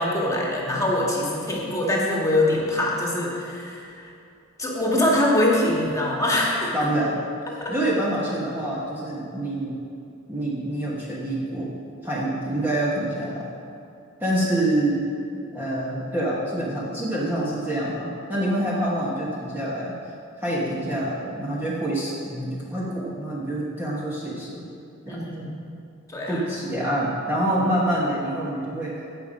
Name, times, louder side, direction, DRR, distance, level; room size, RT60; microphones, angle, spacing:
voice 1, 0.0-4.1 4.6-6.9 7.6-7.7 25.0-25.6 26.1-26.4, left 1 dB, 15° left, -3 dB, 1.7 m, -23 dB
voice 2, 6.7-7.2 7.7-9.8 10.3-11.8 12.0-13.5 14.2-15.0 15.5-19.9 20.4-24.6 25.0-25.3 26.3-29.0, right 1 dB, 10° right, -6 dB, 1.2 m, -26 dB
16.0 x 5.6 x 5.1 m, 2.5 s
head